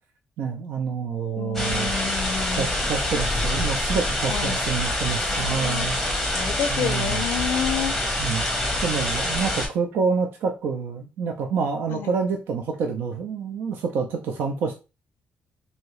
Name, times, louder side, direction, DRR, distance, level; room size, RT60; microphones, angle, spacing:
voice 1, 0.4-1.9 2.6-6.0 6.7-7.2 8.2-8.4 8.8-14.8, right 5 dB, 90° right, 4 dB, 0.4 m, -27 dB
voice 2, 1.4-2.8 4.3-4.6 5.3-5.9 6.3-8.3 11.9-12.1, left 9 dB, 80° left, 11 dB, 0.4 m, -30 dB
sound 1, 1.6-9.7, left 1 dB, ahead, 0.8 m, -26 dB
2.7 x 2.7 x 3.0 m, 0.30 s
cardioid pair, 160°, 4 cm